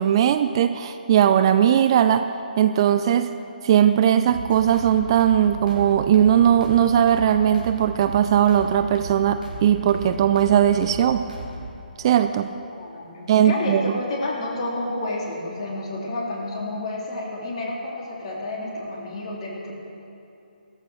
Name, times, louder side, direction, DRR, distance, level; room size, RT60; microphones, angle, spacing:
voice 1, 0.0-2.3 2.6-3.3 3.6-11.2 12.0-12.5 13.3-14.0, right 9 dB, 30° right, 10 dB, 0.4 m, -19 dB
sound 1, 4.3-11.8, right 2 dB, 60° right, 3.8 m, -37 dB
voice 2, 12.7-19.7, left 2 dB, 40° left, -2 dB, 3.3 m, -30 dB
14.5 x 14.0 x 6.3 m, 2.7 s
figure-of-eight pair, 140°, 5 cm